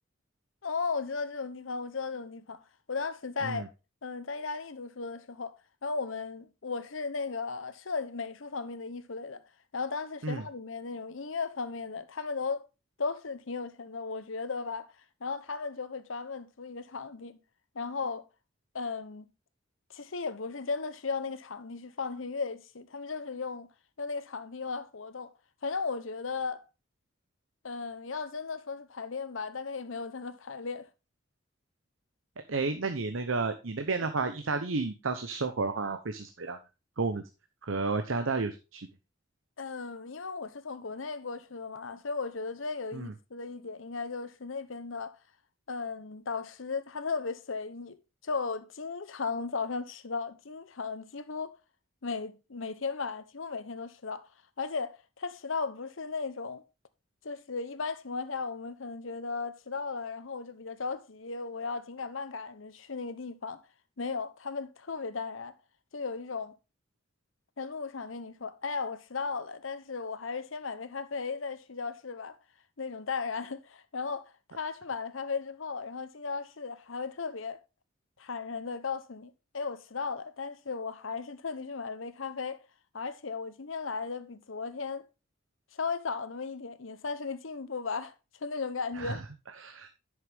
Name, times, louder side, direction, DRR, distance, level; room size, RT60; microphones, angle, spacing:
voice 1, 0.6-2.6 2.9-3.6 4.0-5.5 5.8-9.4 9.7-12.6 13.0-14.9 15.2-17.4 17.7-18.2 18.7-19.2 19.9-23.7 24.0-25.3 25.6-26.6 27.6-30.9 34.0-34.1 39.6-45.2 45.7-48.0 48.2-51.5 52.0-54.3 54.6-56.6 57.2-63.6 64.0-65.5 65.9-66.5 67.6-72.4 72.8-77.6 78.2-82.6 82.9-85.1 85.8-88.1 88.4-89.2, left 4 dB, 85° left, 0.9 m, -36 dB
voice 2, 32.5-36.6 37.0-37.2 37.6-38.9 42.9-43.1 88.9-89.2 89.6-89.9, right 3 dB, 90° right, 0.9 m, -31 dB
11.0 x 6.6 x 3.5 m
head